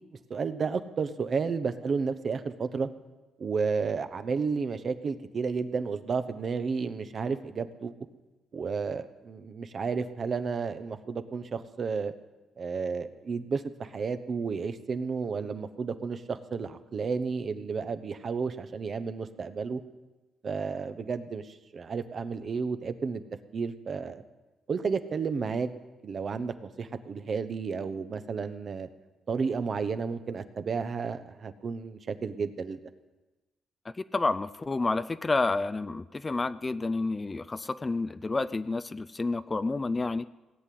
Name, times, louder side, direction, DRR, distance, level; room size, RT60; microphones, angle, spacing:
voice 1, 0.3-2.9 3.4-7.9 8.5-12.1 12.6-19.8 20.4-23.2 23.5-24.2 24.7-25.7 26.0-28.9 29.3-32.8, right 5 dB, 45° right, 10 dB, 1.0 m, -32 dB
voice 2, 34.1-40.2, left 3 dB, 25° left, 14 dB, 0.4 m, -29 dB
17.5 x 8.3 x 7.7 m, 1.1 s
cardioid pair, 90°, 0 cm